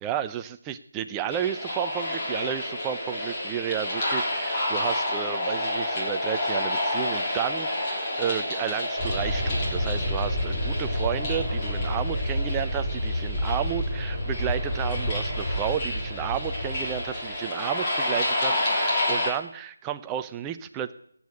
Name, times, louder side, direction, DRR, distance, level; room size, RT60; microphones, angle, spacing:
voice 1, 0.0-20.9, right 10 dB, 10° right, 9 dB, 0.6 m, -32 dB
sound 1, 1.3-19.3, left 1 dB, 20° left, 3.3 m, -30 dB
Aircraft, 9.0-17.4, equal, 5° left, 2.9 m, -29 dB
16.5 x 8.5 x 8.3 m, 0.68 s
figure-of-eight pair, 165°, 0 cm